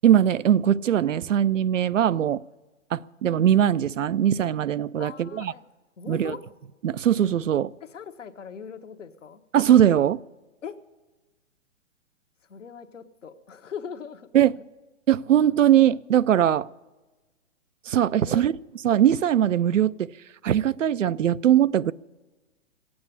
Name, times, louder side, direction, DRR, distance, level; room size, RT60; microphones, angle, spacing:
voice 1, 0.0-2.4 2.9-5.5 6.1-6.3 6.8-7.7 9.5-10.2 14.3-14.5 15.1-16.7 17.9-18.5 18.8-20.1 20.4-21.9, right 10 dB, 80° right, 0.5 m, -20 dB
voice 2, 5.0-5.6 6.0-6.4 7.9-9.4 10.6-10.7 12.5-14.3 18.2-18.4, left 7 dB, 75° left, 1.2 m, -40 dB
16.0 x 8.6 x 8.5 m
figure-of-eight pair, 125°, 37 cm